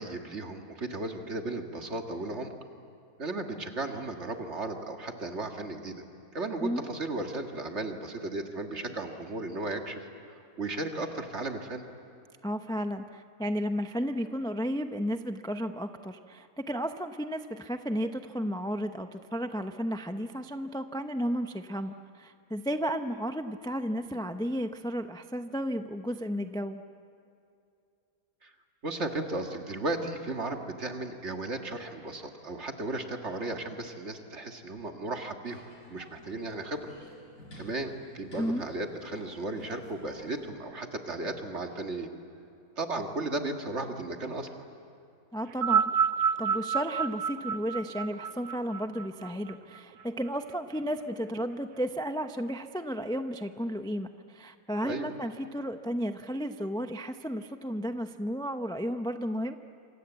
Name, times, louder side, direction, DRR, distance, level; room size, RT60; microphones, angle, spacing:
voice 1, 0.0-2.5 3.2-6.0 6.3-10.1 10.6-11.8 28.4-28.5 28.8-35.6 35.9-36.9 37.6-42.1 42.8-44.5 54.8-55.1, right 2 dB, 45° right, 4 dB, 2.2 m, -35 dB
voice 2, 12.4-26.8 38.4-38.7 45.3-45.9 46.4-59.6, equal, 5° left, 7 dB, 0.4 m, -33 dB
sound 1, 35.5-40.5, equal, 55° left, 5.3 m, -51 dB
sound 2, 45.5-50.0 50.9-51.0, right 7 dB, 80° right, 1.5 m, -29 dB
27.0 x 26.5 x 8.2 m, 2.5 s
omnidirectional pair, 1.7 m